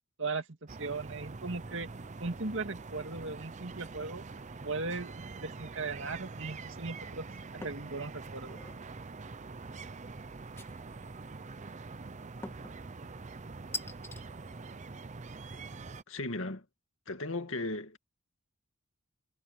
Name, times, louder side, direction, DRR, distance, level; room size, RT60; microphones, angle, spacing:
sound 1, 0.7-16.0, right 3 dB, 35° right, 0.7 m, -45 dB
voice 1, 0.8-1.9 2.2-4.2 4.6-7.3 7.5-8.6, right 3 dB, 65° right, 2.4 m, -37 dB
sound 2, 7.6-7.9 8.4-8.8 10.6-11.1 12.4-12.8 13.7-14.2, left 2 dB, 10° left, 1.8 m, -42 dB
voice 2, 16.1-16.6 17.1-18.0, left 2 dB, 65° left, 2.3 m, -36 dB
head